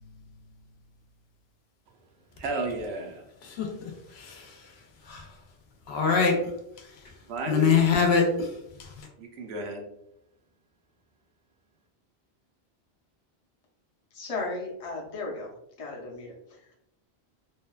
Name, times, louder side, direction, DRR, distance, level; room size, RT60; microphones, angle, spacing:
voice 1, 2.4-3.2 7.2-7.7 9.2-9.9, right 3 dB, 80° right, 0.8 m, -33 dB
voice 2, 3.4-4.7 5.0-5.3 5.9-6.5 6.8-7.1 7.5-9.1, left 5 dB, 80° left, 0.8 m, -25 dB
voice 3, 14.1-15.5 15.8-16.7, left 3 dB, 40° left, 0.6 m, -36 dB
2.6 x 2.1 x 2.3 m
omnidirectional pair, 1.1 m